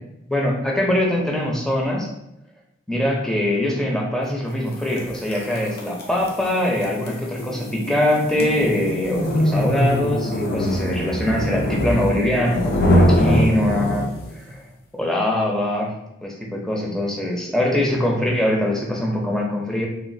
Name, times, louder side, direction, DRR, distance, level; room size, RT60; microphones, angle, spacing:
voice 1, 0.3-2.1 2.9-14.0 14.4-14.6 15.0-15.9 16.2-19.9, left 1 dB, 5° left, -2 dB, 0.5 m, -22 dB
sound 1, 5.0-14.3, equal, 55° left, 0.6 m, -22 dB
3.0 x 2.3 x 2.6 m, 0.83 s
head